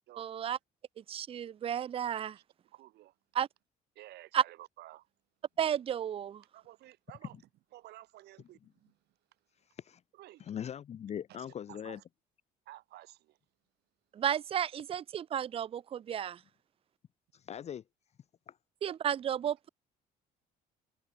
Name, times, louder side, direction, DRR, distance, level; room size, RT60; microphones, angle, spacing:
voice 1, 0.2-0.6 1.0-2.4 3.3-3.5 4.3-4.4 5.6-6.4 14.1-16.4 18.8-19.7, right 9 dB, 35° right, 0.4 m, -33 dB
voice 2, 2.3-3.1 3.9-5.1 6.5-7.4 7.7-9.0 10.1-10.5 11.4-12.0 12.6-13.4, right 15 dB, 75° right, 3.1 m, -53 dB
voice 3, 10.5-12.0 17.3-17.8 18.5-18.6, left 9 dB, 40° left, 0.6 m, -40 dB
cardioid pair, 110°, 17 cm